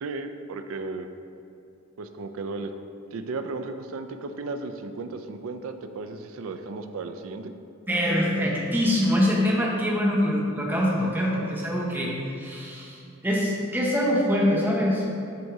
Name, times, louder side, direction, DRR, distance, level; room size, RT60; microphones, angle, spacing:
voice 1, 0.0-1.1 2.0-2.7 3.1-7.5, right 3 dB, 80° right, 8 dB, 0.4 m, -35 dB
voice 2, 7.9-15.0, equal, 10° right, -4 dB, 0.9 m, -24 dB
7.7 x 2.7 x 4.6 m, 2.6 s
head